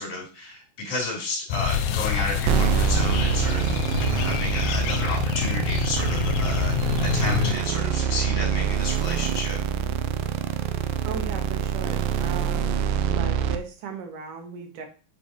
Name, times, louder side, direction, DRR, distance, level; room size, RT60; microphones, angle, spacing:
voice 1, 0.0-3.8 4.0-9.6, left 2 dB, 65° left, -1 dB, 4.8 m, -32 dB
sound 1, 1.5-7.5, left 9 dB, 90° left, 2.4 m, -26 dB
sound 2, 2.5-13.6, right 8 dB, 90° right, 2.4 m, -25 dB
voice 2, 11.1-12.8 13.1-14.9, right 6 dB, 70° right, 4 dB, 2.8 m, -37 dB
8.3 x 6.2 x 3.0 m, 0.36 s
omnidirectional pair, 3.9 m